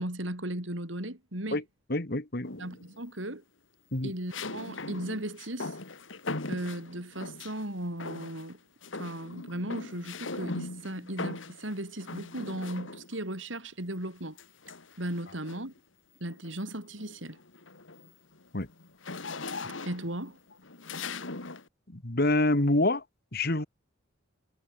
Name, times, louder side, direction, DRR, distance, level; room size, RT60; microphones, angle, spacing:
voice 1, 0.0-1.6 2.6-3.4 4.0-5.8 6.5-8.6 9.0-14.4 15.0-15.7 16.2-17.4 19.8-20.4, right 1 dB, 80° right, 5.2 m, -36 dB
voice 2, 1.9-2.6 3.9-4.1 18.5-18.7 21.9-23.0 23.3-23.7, left 2 dB, 55° left, 2.2 m, -26 dB
sound 1, 2.4-3.0 4.3-7.6 8.0-8.5 8.8-13.2 14.4-15.8 16.3-16.5 16.9-21.7, left 3 dB, 85° left, 2.5 m, -40 dB
head